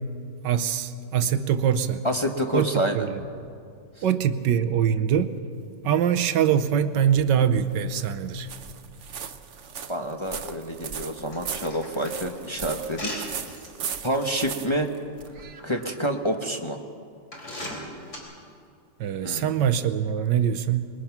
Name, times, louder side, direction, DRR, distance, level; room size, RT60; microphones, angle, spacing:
voice 1, 0.4-2.0 2.5-3.1 4.0-5.4 5.8-8.5 19.0-20.9, right 8 dB, 85° right, 1.6 m, -23 dB
voice 2, 2.0-3.1 9.9-13.3 14.0-14.9 15.6-16.8 19.2-19.5, equal, 20° left, 1.1 m, -28 dB
sound 1, 7.4-15.6, right 7 dB, 50° right, 1.1 m, -38 dB
sound 2, 11.3-13.7 14.2-14.4 15.3-15.8 16.5-16.6 17.3-18.2, left 1 dB, 60° left, 4.9 m, -38 dB
25.5 x 22.0 x 6.0 m
omnidirectional pair, 1.9 m